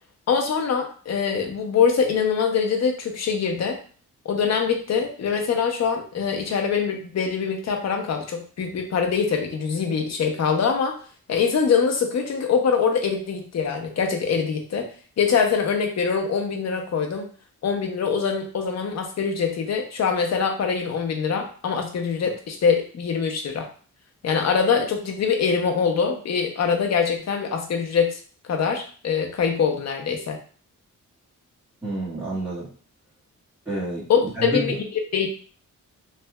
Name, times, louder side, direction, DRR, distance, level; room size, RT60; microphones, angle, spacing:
voice 1, 0.3-3.8 4.2-10.9 11.3-14.9 15.2-17.3 17.6-23.7 24.2-28.2 28.4-30.4 34.1-34.8 35.1-35.3, left 6 dB, 55° left, 3 dB, 0.6 m, -23 dB
voice 2, 31.8-32.7 33.6-34.8, right 1 dB, 10° right, -13 dB, 1.4 m, -29 dB
3.2 x 2.7 x 2.2 m, 0.42 s
wide cardioid pair, 145°, 32 cm